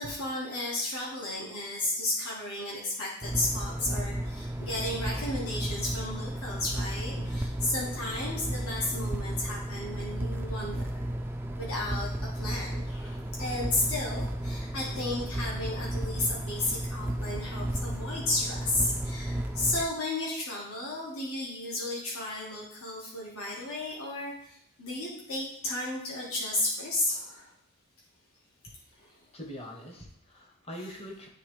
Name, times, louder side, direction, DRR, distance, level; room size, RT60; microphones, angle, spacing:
voice 1, 0.0-11.0 11.6-27.5 29.0-29.1 30.7-30.9, left 2 dB, 65° left, -4 dB, 1.5 m, -33 dB
sound 1, 3.2-19.9, right 1 dB, 10° right, 0.3 m, -34 dB
voice 2, 28.9-31.3, equal, 25° left, 0 dB, 1.0 m, -44 dB
9.9 x 3.6 x 3.2 m, 0.69 s
head